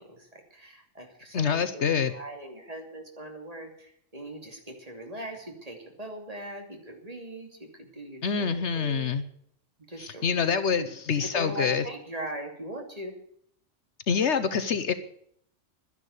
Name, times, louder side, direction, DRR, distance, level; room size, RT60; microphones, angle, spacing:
voice 1, 0.0-9.1 9.9-10.2 10.8-10.9 11.2-13.1, right 1 dB, 30° right, 2 dB, 2.8 m, -40 dB
voice 2, 1.3-2.1 8.2-9.2 10.0-11.8 14.1-14.9, left 6 dB, 65° left, 12 dB, 1.1 m, -26 dB
12.0 x 10.5 x 8.1 m, 0.68 s
omnidirectional pair, 1.3 m